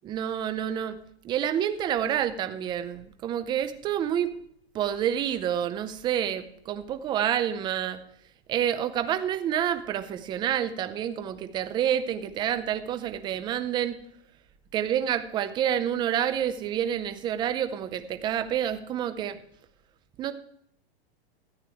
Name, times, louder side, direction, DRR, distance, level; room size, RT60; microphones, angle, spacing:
voice 1, 0.0-1.0 1.2-4.3 4.7-8.0 8.5-14.0 14.7-19.4 20.2-20.3, right 10 dB, 15° right, 10 dB, 0.5 m, -28 dB
13.5 x 8.8 x 4.8 m, 0.70 s
hypercardioid pair, 155°, 31 cm